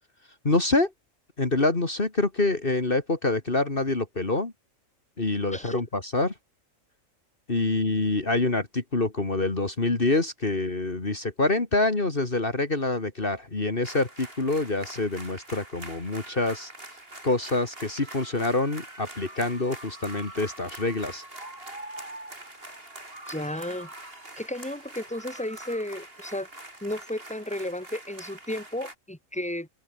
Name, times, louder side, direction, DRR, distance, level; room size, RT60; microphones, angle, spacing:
voice 1, 0.4-0.9 1.4-4.5 5.2-6.3 7.5-16.7 17.2-21.2, left 2 dB, 45° left, 2.8 m, -26 dB
voice 2, 5.5-5.8 23.3-23.9 24.4-26.5 26.8-29.7, left 1 dB, 5° left, 3.7 m, -33 dB
sound 1, 13.8-28.9, right 1 dB, 45° right, 6.1 m, -43 dB
open air
omnidirectional pair, 1.3 m